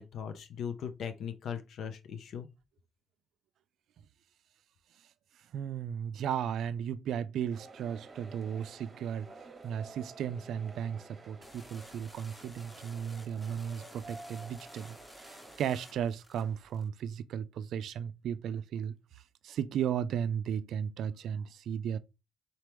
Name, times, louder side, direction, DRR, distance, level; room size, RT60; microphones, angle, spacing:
voice 1, 0.0-2.5, left 7 dB, 70° left, 0.5 m, -39 dB
voice 2, 5.5-9.3 9.6-18.9 19.4-22.0, right 8 dB, 75° right, 0.3 m, -35 dB
sound 1, 7.5-15.7, right 3 dB, 30° right, 1.0 m, -52 dB
sound 2, 11.4-16.9, left 1 dB, 15° left, 0.9 m, -54 dB
4.1 x 3.0 x 3.3 m
cardioid pair, 90°, 0 cm